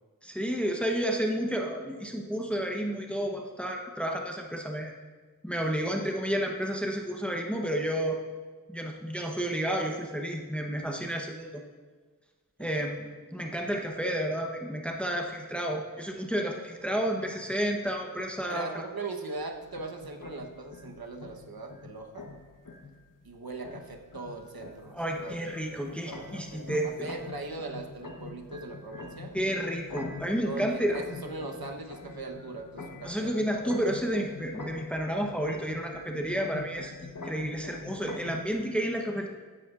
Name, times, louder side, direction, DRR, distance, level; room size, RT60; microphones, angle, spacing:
voice 1, 0.2-4.9 5.4-8.2 8.7-11.6 12.6-18.8 24.9-27.1 29.3-31.0 33.0-39.3, equal, 5° left, 1 dB, 1.0 m, -31 dB
voice 2, 12.6-12.9 18.5-22.3 23.2-29.3 30.4-33.8, right 3 dB, 75° right, 3 dB, 1.1 m, -40 dB
sound 1, 19.4-38.6, left 3 dB, 60° left, 1.1 m, -44 dB
15.0 x 10.0 x 2.5 m, 1.4 s
wide cardioid pair, 60°, 37 cm